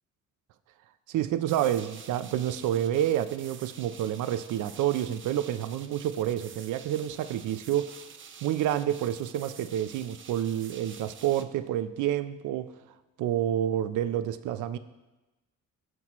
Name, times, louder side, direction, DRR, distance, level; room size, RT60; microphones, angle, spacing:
voice 1, 1.1-7.9 8.4-12.7 13.2-14.8, right 11 dB, 80° right, 12 dB, 0.6 m, -29 dB
sound 1, 1.5-11.4, right 7 dB, 40° right, 0.7 m, -48 dB
17.0 x 6.0 x 3.1 m, 1.1 s
cardioid pair, 90°, 30 cm